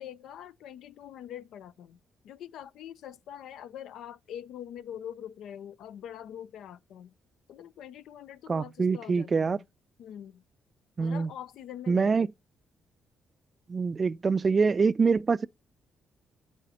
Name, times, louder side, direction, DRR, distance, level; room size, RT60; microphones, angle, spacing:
voice 1, 0.0-2.0 2.2-7.1 7.5-9.7 10.0-10.4 11.0-12.3, left 10 dB, 80° left, 0.6 m, -44 dB
voice 2, 8.5-9.6 11.0-11.3 11.9-12.3 13.7-15.5, right 5 dB, 35° right, 0.4 m, -25 dB
9.1 x 6.4 x 4.3 m
cardioid pair, 90°, 0 cm